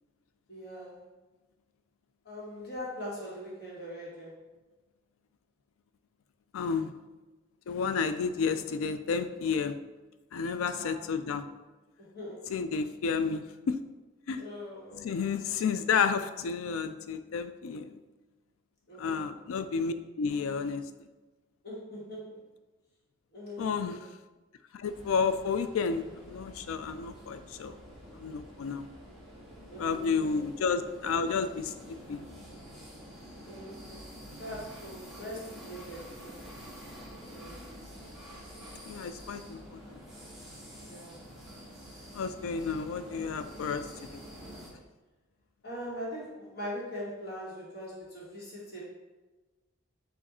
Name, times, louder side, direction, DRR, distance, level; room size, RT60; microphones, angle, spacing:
voice 1, 0.5-1.1 2.2-4.4 10.8-11.0 12.0-12.5 14.3-15.4 18.9-19.4 21.6-22.4 23.3-24.0 29.7-30.4 33.4-34.1 34.4-36.8 37.3-37.6 40.8-41.2 45.6-48.8, equal, 50° left, -5 dB, 1.4 m, -42 dB
voice 2, 6.5-6.9 7.7-9.8 10.3-11.4 12.5-13.8 14.3-14.4 15.0-18.0 19.0-20.8 23.6-24.0 24.7-27.8 28.1-28.9 29.8-31.7 32.1-32.2 38.9-40.0 42.1-44.2, left 5 dB, 85° left, 11 dB, 0.3 m, -31 dB
sound 1, 24.9-44.7, equal, ahead, 1.0 m, -48 dB
4.6 x 2.5 x 4.2 m, 1.2 s
head